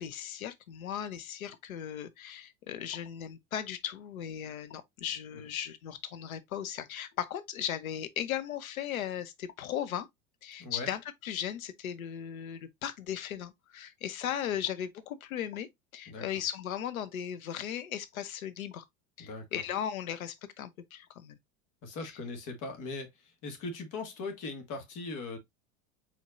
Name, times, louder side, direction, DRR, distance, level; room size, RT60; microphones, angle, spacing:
voice 1, 0.0-10.1 10.4-18.8 19.2-21.4, left 10 dB, 90° left, 0.9 m, -37 dB
voice 2, 10.6-10.9 16.1-16.3 19.2-19.5 21.8-25.4, left 3 dB, 50° left, 1.9 m, -39 dB
4.4 x 4.3 x 2.5 m
hypercardioid pair, 100°, 41 cm